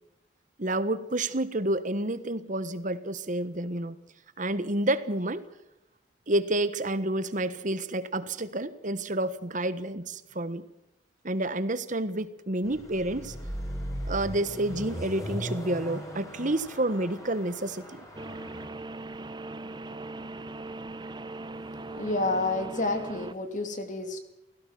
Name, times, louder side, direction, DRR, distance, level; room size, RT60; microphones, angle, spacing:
voice 1, 0.6-4.0 4.4-5.4 6.3-10.6 11.2-13.3 14.1-18.0, right 1 dB, 45° right, 1.4 m, -29 dB
Car passing by / Accelerating revving vroom, 12.6-18.7, equal, 20° left, 5.5 m, -38 dB
sound 1, 18.2-23.3, right 2 dB, 25° right, 1.1 m, -39 dB
voice 2, 22.0-24.2, left 2 dB, 45° left, 2.9 m, -29 dB
17.0 x 17.0 x 9.4 m
head